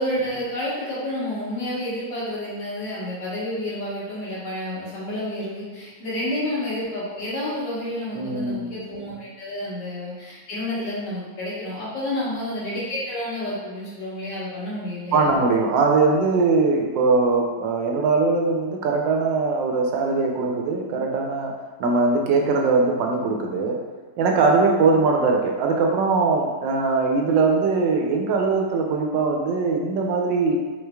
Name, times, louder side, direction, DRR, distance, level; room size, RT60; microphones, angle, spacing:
voice 1, 0.0-15.3, left 1 dB, 90° left, -9 dB, 1.9 m, -30 dB
voice 2, 8.1-8.7 9.5-9.6 12.1-12.4 15.1-21.5 21.8-23.8 24.2-30.6, right 4 dB, 85° right, 1 dB, 1.3 m, -21 dB
4.0 x 3.1 x 2.2 m, 1.3 s
omnidirectional pair, 1.9 m